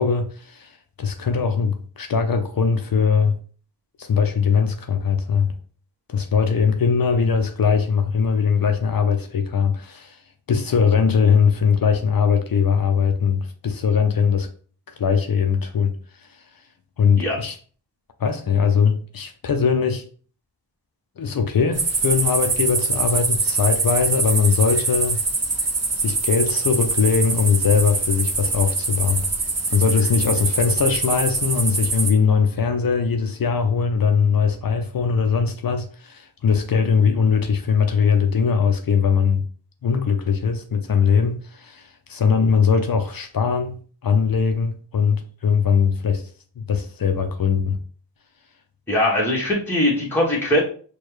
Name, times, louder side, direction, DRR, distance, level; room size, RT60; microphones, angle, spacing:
voice 1, 0.0-3.3 4.0-5.5 6.1-10.2 10.5-14.5 14.9-15.9 16.3-16.4 17.0-17.6 18.2-20.0 21.2-25.2 26.0-29.3 29.7-39.4 39.8-46.2 46.6-47.8, left 6 dB, 55° left, 0.5 m, -20 dB
sound 1, 21.7-32.1, right 3 dB, 35° right, 0.7 m, -24 dB
voice 2, 48.9-50.6, left 1 dB, 5° left, 1.2 m, -20 dB
4.4 x 2.3 x 3.2 m
cardioid pair, 50°, 43 cm